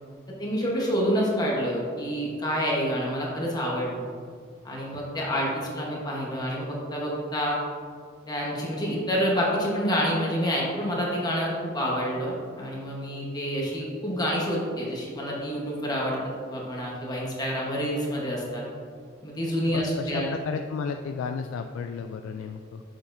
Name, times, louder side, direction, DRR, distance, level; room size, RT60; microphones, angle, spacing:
voice 1, 0.4-4.0 4.6-7.6 8.3-16.2 16.5-18.6 19.2-20.3, equal, 20° left, -3 dB, 1.1 m, -28 dB
voice 2, 19.7-22.8, left 5 dB, 90° left, 6 dB, 0.3 m, -33 dB
6.9 x 6.0 x 2.6 m, 2.1 s
head